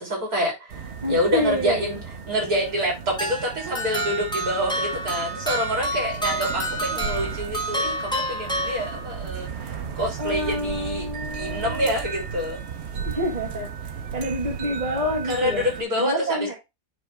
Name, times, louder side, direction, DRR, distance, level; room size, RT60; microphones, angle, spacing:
voice 1, 0.0-2.0 2.3-11.1 11.3-12.6 15.3-16.5, equal, 70° right, -1 dB, 4.1 m, -27 dB
sound 1, 0.7-15.8, right 6 dB, 50° right, 0.9 m, -35 dB
voice 2, 1.0-2.0 10.2-11.9 13.0-13.7 14.1-15.6 16.0-16.5, equal, 25° right, -1 dB, 1.8 m, -28 dB
sound 2, 3.2-9.3, right 1 dB, 5° left, 0.7 m, -29 dB
9.5 x 3.4 x 3.4 m, 0.23 s
omnidirectional pair, 1.7 m